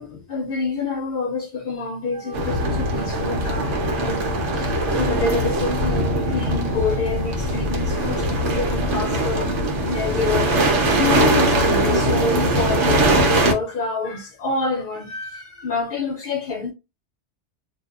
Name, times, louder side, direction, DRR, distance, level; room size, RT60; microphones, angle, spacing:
voice 1, 0.0-4.2 4.5-16.7, left 4 dB, 55° left, 0.8 m, -27 dB
Wind instrument woodwind instrument, 2.1-8.0, right 14 dB, 45° right, 0.7 m, -39 dB
sound 1, 2.3-13.5, right 1 dB, 85° right, 1.2 m, -21 dB
2.7 x 2.1 x 3.7 m
omnidirectional pair, 1.2 m